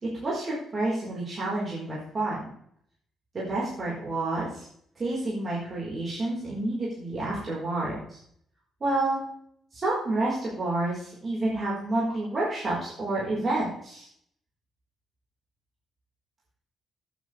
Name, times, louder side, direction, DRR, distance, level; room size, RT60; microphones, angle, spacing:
voice 1, 0.0-2.4 3.3-4.6 5.0-8.2 8.8-9.2 9.7-14.1, right 2 dB, 35° right, -6 dB, 4.6 m, -29 dB
14.0 x 8.6 x 3.5 m, 0.66 s
cardioid pair, 90°, 0 cm